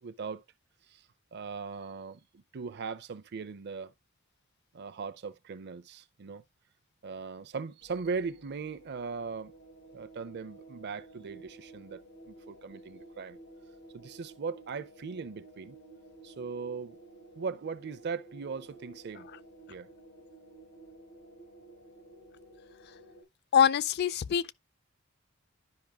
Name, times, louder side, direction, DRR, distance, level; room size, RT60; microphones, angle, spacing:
voice 1, 0.0-0.4 0.9-3.9 4.7-6.4 7.0-9.5 9.9-13.4 13.9-15.8 16.2-17.0 17.3-19.3 19.7-19.9, right 5 dB, 55° right, 0.5 m, -39 dB
sound 1, 7.8-23.2, right 2 dB, 85° left, 4.3 m, -53 dB
voice 2, 23.5-24.5, left 8 dB, 50° left, 0.4 m, -24 dB
12.0 x 5.2 x 2.3 m
head